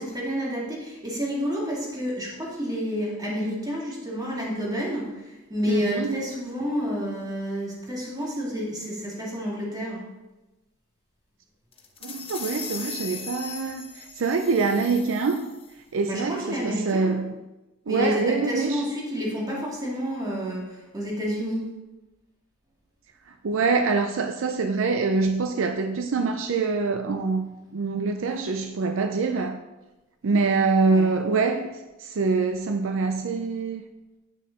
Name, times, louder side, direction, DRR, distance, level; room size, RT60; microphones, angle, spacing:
voice 1, 0.0-10.0 16.1-17.2 17.9-21.6 30.8-31.1, equal, 20° right, 2.2 m, -29 dB
voice 2, 5.7-6.2 12.0-15.5 15.9-17.3 17.9-18.8 23.4-29.6 30.2-31.7 32.0-33.9, right 4 dB, 65° right, 0.5 m, -25 dB
sound 1, 11.7-15.7, left 6 dB, 25° left, 1.0 m, -39 dB
8.8 x 6.4 x 4.0 m
head